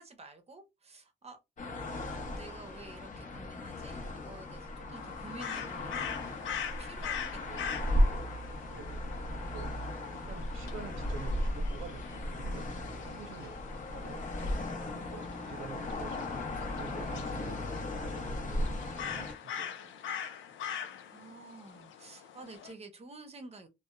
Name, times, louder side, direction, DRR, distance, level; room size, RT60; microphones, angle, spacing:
voice 1, 0.0-1.4 2.3-8.5 14.4-14.7 19.0-19.1 21.1-23.7, right 3 dB, 30° right, 0.8 m, -51 dB
sound 1, 1.6-19.3, left 1 dB, 40° left, 0.8 m, -36 dB
voice 2, 1.7-2.3 7.4-7.9 8.6-9.7 10.1-14.2 14.8-20.0 20.5-20.7, right 5 dB, 85° right, 0.7 m, -49 dB
sound 2, 4.9-22.7, left 8 dB, 75° left, 0.6 m, -43 dB
2.7 x 2.3 x 2.2 m
cardioid pair, 90°, 20 cm